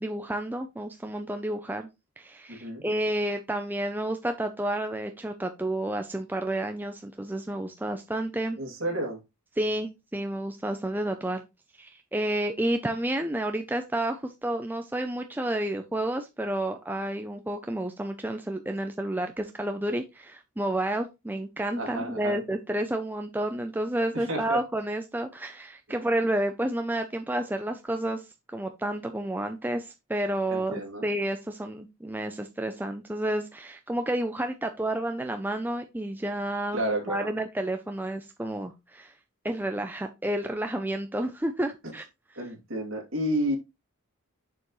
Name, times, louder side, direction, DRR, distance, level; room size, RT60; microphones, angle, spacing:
voice 1, 0.0-1.9 2.2-8.6 9.6-11.4 11.8-28.3 28.5-36.8 37.1-39.1 39.4-42.0, right 1 dB, 10° right, 0.4 m, -30 dB
voice 2, 2.5-2.8 8.6-9.2 21.8-22.4 24.1-24.6 30.5-31.0 36.7-37.3 42.4-43.6, right 1 dB, 60° right, 2.6 m, -31 dB
6.8 x 6.6 x 3.1 m
head